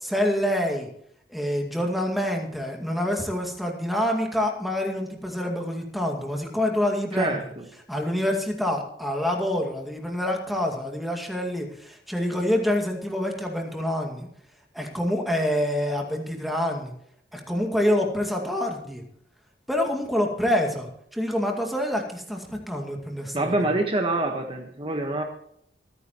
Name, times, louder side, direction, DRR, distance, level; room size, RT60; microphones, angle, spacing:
voice 1, 0.0-0.9 1.3-7.5 7.9-14.3 14.7-16.9 17.3-19.0 19.7-23.5, left 1 dB, ahead, 1 dB, 2.2 m, -26 dB
voice 2, 7.1-7.6 23.3-25.2, right 2 dB, 30° right, 3 dB, 1.3 m, -26 dB
25.5 x 9.7 x 3.1 m, 0.69 s
head